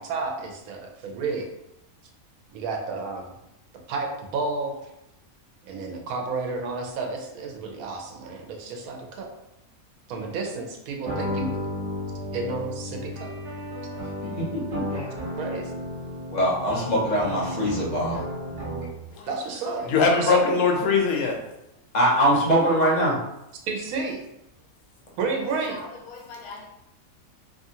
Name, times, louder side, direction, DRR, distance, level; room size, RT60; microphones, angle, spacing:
voice 1, 0.0-1.5 2.5-3.3 3.9-4.7 5.7-9.3 10.1-11.5 12.3-13.3 15.4-15.7 19.3-19.9 20.2-20.4 23.7-24.2 25.2-25.8, right 4 dB, 80° right, 2 dB, 1.0 m, -31 dB
sound 1, 11.0-19.1, left 1 dB, 60° right, 1.1 m, -33 dB
voice 2, 14.2-14.8 16.3-18.2 21.9-23.2, equal, 40° left, -5 dB, 0.7 m, -22 dB
voice 3, 19.8-21.4 25.7-26.7, left 4 dB, 90° left, 2 dB, 1.1 m, -23 dB
2.7 x 2.4 x 2.7 m, 0.86 s
omnidirectional pair, 1.5 m